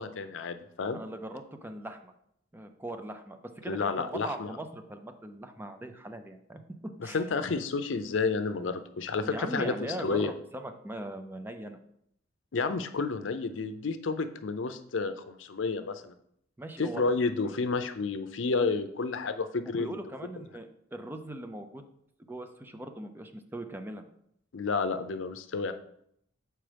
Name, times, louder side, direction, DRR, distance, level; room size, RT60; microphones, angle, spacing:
voice 1, 0.0-1.0 3.7-4.5 7.1-9.7 10.0-10.3 12.5-16.1 16.8-19.9 24.5-25.7, left 4 dB, 80° left, 10 dB, 0.5 m, -30 dB
voice 2, 0.9-2.1 2.5-6.6 7.0-7.2 9.2-11.8 16.6-17.0 19.6-21.9 22.3-24.1, right 1 dB, 10° right, 7 dB, 0.5 m, -40 dB
7.4 x 4.6 x 3.4 m, 0.73 s
head